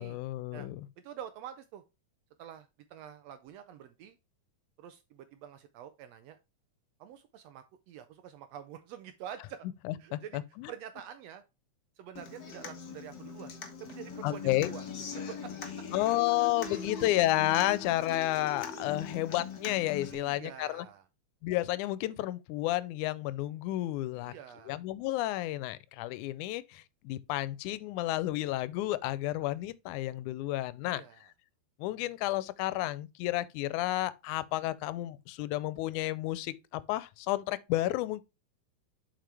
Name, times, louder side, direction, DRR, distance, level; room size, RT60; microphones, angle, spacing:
voice 1, 0.0-0.9 9.9-10.7 14.2-14.7 15.9-20.9 21.4-24.3 24.7-31.0 31.8-38.2, left 16 dB, 90° left, 2.0 m, -31 dB
voice 2, 1.0-1.8 2.4-4.2 4.8-6.4 7.0-9.7 10.0-10.4 10.7-11.4 12.0-14.9 15.3-15.5 19.0-19.1 20.1-21.0 24.1-24.8 30.8-31.3, right 9 dB, 80° right, 1.5 m, -47 dB
Human voice / Acoustic guitar, 12.2-20.1, left 5 dB, 60° left, 1.0 m, -41 dB
7.6 x 5.1 x 3.3 m
omnidirectional pair, 3.4 m